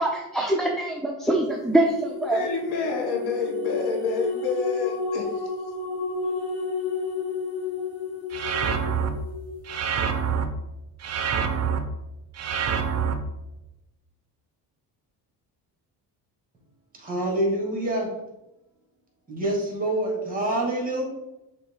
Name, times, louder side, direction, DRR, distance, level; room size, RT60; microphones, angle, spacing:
voice 1, 0.0-2.4, right 1 dB, ahead, 0 dB, 0.5 m, -24 dB
sound 1, 1.7-9.5, left 5 dB, 35° left, 1.6 m, -31 dB
voice 2, 2.3-5.4, left 3 dB, 70° left, 2 dB, 1.5 m, -28 dB
sound 2, 8.3-9.1 9.7-10.5 11.0-11.8 12.4-13.1, right 7 dB, 40° right, 0.7 m, -26 dB
voice 3, 17.0-18.1 19.3-21.0, right 1 dB, 20° right, -1 dB, 2.3 m, -26 dB
6.4 x 3.3 x 4.7 m, 0.95 s
cardioid pair, 125°, 40 cm